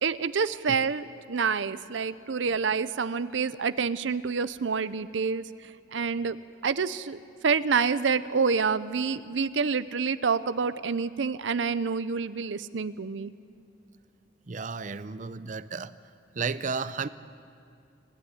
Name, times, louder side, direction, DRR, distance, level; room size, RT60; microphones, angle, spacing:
voice 1, 0.0-5.5 5.9-6.4 6.6-13.3, right 5 dB, 85° right, 14 dB, 0.6 m, -27 dB
voice 2, 14.5-15.9 16.4-17.1, right 5 dB, 45° right, 14 dB, 0.6 m, -33 dB
25.5 x 14.5 x 10.0 m, 2.4 s
head